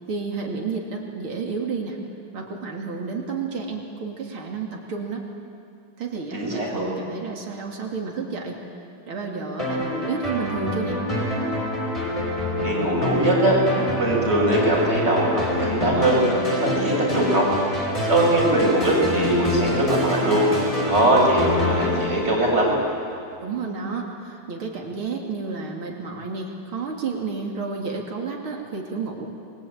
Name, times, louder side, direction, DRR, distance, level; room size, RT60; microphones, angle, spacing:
voice 1, 0.1-2.0 2.3-5.2 6.0-8.6 9.1-11.0 23.4-29.3, right 4 dB, 90° right, 0 dB, 3.5 m, -31 dB
voice 2, 6.3-6.9 12.6-13.6 13.9-16.2 16.6-17.5 18.1-20.5 20.8-22.8, right 1 dB, 30° right, -2 dB, 6.7 m, -21 dB
sound 1, 9.6-23.1, left 1 dB, 15° left, 5.2 m, -26 dB
28.5 x 22.0 x 8.8 m, 2.5 s
omnidirectional pair, 2.2 m